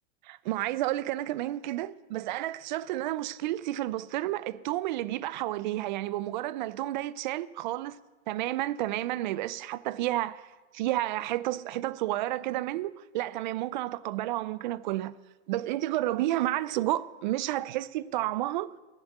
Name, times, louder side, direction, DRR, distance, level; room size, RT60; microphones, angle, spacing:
voice 1, 0.2-8.0 8.3-10.5 10.7-15.1 15.5-18.7, right 15 dB, 45° right, 0.4 m, -31 dB
11.0 x 7.4 x 8.8 m
supercardioid pair, 155°, 35 cm